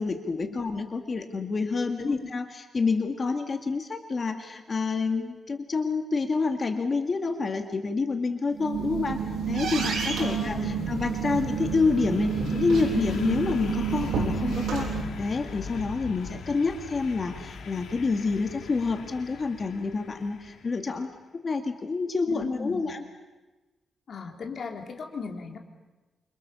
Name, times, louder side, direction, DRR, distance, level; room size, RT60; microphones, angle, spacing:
voice 1, 0.0-9.2 9.5-21.1 21.4-23.0, left 4 dB, 35° left, 6 dB, 2.1 m, -28 dB
voice 2, 2.0-2.3 10.2-10.9 22.3-22.9 24.1-25.6, left 4 dB, 50° left, 3 dB, 3.6 m, -38 dB
sound 1, 8.5-15.0, right 6 dB, 85° right, 7.3 m, -29 dB
sound 2, 9.4-21.0, left 5 dB, 90° left, 3.0 m, -42 dB
29.0 x 26.0 x 7.1 m, 1.2 s
wide cardioid pair, 150°, 0 cm